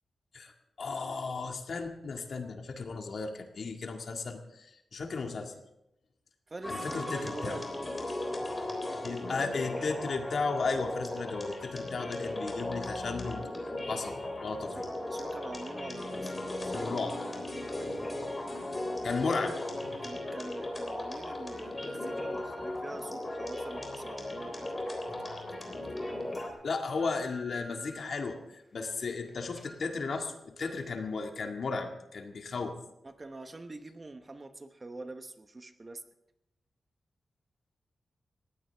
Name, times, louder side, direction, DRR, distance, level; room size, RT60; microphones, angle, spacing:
voice 1, 0.8-5.5 6.7-7.6 9.0-13.4 13.9-14.7 16.7-17.1 19.0-19.6 26.6-32.8, left 4 dB, 60° left, 3 dB, 1.9 m, -35 dB
voice 2, 6.5-7.7 14.7-16.9 20.0-24.7 33.0-36.0, right 2 dB, 25° right, 8 dB, 1.0 m, -45 dB
sound 1, 6.6-26.5, left 1 dB, 20° left, 3.5 m, -37 dB
sound 2, 19.5-19.6 20.2-20.5 21.1-22.8 23.4-25.7 26.1-26.2 26.7-28.0 28.4-29.3 29.6-29.7 30.1-30.2 30.6-30.9 31.2-31.3, left 1 dB, 5° left, 3.5 m, -53 dB
20.0 x 15.5 x 3.5 m, 0.86 s
wide cardioid pair, 140°, 0 cm